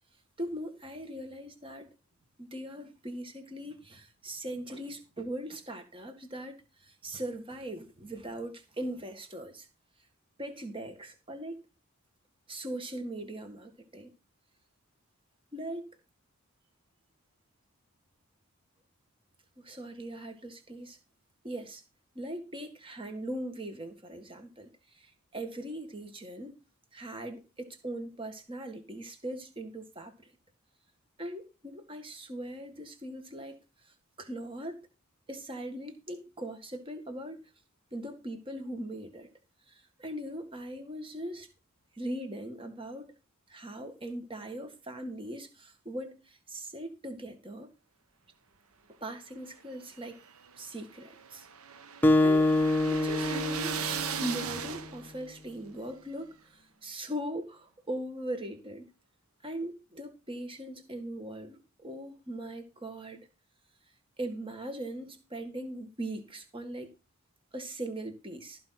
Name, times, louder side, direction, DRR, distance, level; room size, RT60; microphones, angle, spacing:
voice 1, 0.4-1.9 2.4-9.7 10.4-11.6 12.5-14.1 15.5-15.8 19.6-21.0 21.4-21.8 22.2-24.7 25.3-26.6 26.9-30.1 31.2-33.6 34.2-34.8 35.3-37.4 37.9-39.3 40.0-41.5 42.0-43.1 43.5-47.7 49.0-50.2 50.6-51.5 52.2-52.5 52.9-56.3 56.8-58.9 59.4-63.2 64.2-66.9 67.5-68.6, right 1 dB, 25° right, 1.8 m, -40 dB
sound 1, 49.8-55.2, right 7 dB, 75° right, 1.1 m, -37 dB
Acoustic guitar, 52.0-54.8, left 2 dB, 10° left, 1.0 m, -26 dB
14.5 x 5.4 x 5.9 m
head